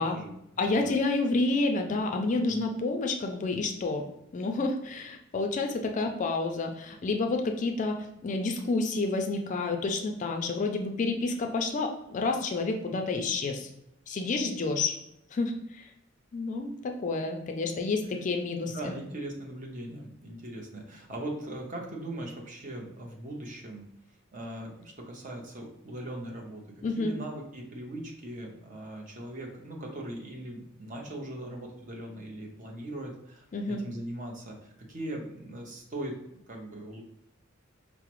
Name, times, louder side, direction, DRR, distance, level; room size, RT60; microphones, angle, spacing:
voice 1, 0.0-1.0 2.5-2.7 18.7-23.8 24.3-26.6 27.0-36.2 36.5-37.0, right 1 dB, 40° right, 0 dB, 0.7 m, -40 dB
voice 2, 0.6-4.1 4.3-13.7 14.1-14.9 15.3-15.9 16.3-18.9 26.8-27.1 33.5-33.8, left 3 dB, 40° left, 4 dB, 0.4 m, -29 dB
4.8 x 2.0 x 2.9 m, 0.79 s
head